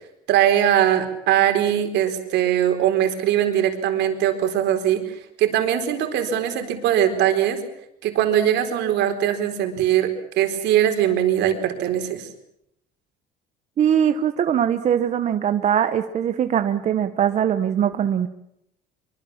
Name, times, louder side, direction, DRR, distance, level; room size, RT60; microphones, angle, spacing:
voice 1, 0.3-7.6 8.0-12.3, right 10 dB, 65° right, 6 dB, 4.4 m, -21 dB
voice 2, 13.8-18.3, right 9 dB, 40° right, 9 dB, 1.1 m, -21 dB
24.5 x 24.0 x 7.3 m, 0.77 s
cardioid pair, 160°, 19 cm